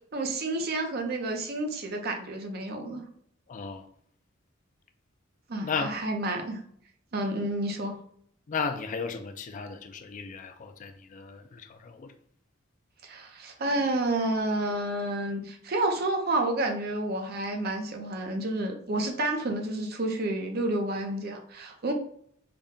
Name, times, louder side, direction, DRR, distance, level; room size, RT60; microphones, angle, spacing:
voice 1, 0.1-3.0 5.5-6.6 7.1-7.9 13.0-21.9, right 2 dB, 50° right, 4 dB, 0.6 m, -30 dB
voice 2, 3.5-3.9 5.6-5.9 8.5-12.1, left 5 dB, 40° left, 7 dB, 0.4 m, -35 dB
3.9 x 2.1 x 3.6 m, 0.66 s
head